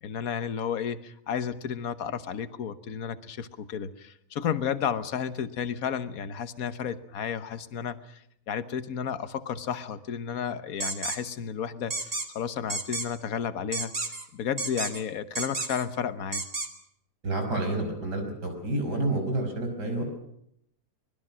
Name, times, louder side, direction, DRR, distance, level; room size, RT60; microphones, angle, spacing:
voice 1, 0.0-16.4, left 8 dB, 60° left, 11 dB, 1.5 m, -32 dB
sound 1, 10.8-11.2 11.9-12.3 12.7-13.1 13.7-14.3 14.6-15.0 15.4-15.9 16.3-16.7, right 3 dB, 35° right, 2.2 m, -31 dB
voice 2, 17.2-20.0, right 2 dB, 85° right, 4 dB, 6.2 m, -29 dB
25.0 x 20.5 x 6.2 m, 0.74 s
omnidirectional pair, 1.7 m